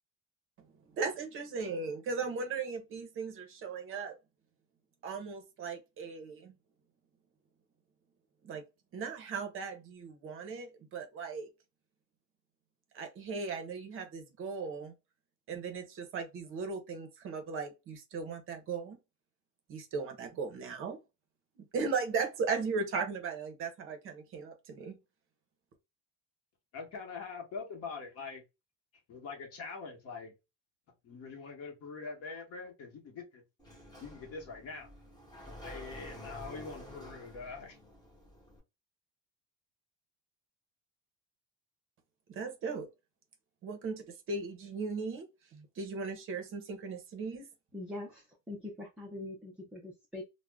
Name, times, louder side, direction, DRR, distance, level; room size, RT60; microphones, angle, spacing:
voice 1, 0.9-4.2 5.0-6.5 8.4-8.6 8.9-11.5 12.9-14.9 15.5-19.0 19.7-21.0 21.6-25.0 42.3-42.9 43.6-45.3 45.5-47.5, right 4 dB, 40° right, 0.6 m, -37 dB
voice 2, 26.7-28.4 29.1-30.3 31.0-33.4 34.0-34.9 35.6-37.8, left 4 dB, 45° left, 1.0 m, -44 dB
Sliding door, 33.6-38.6, left 1 dB, 10° left, 0.9 m, -49 dB
voice 3, 47.7-50.2, left 2 dB, 5° right, 0.3 m, -43 dB
2.4 x 2.1 x 3.3 m
cardioid pair, 165°, 33 cm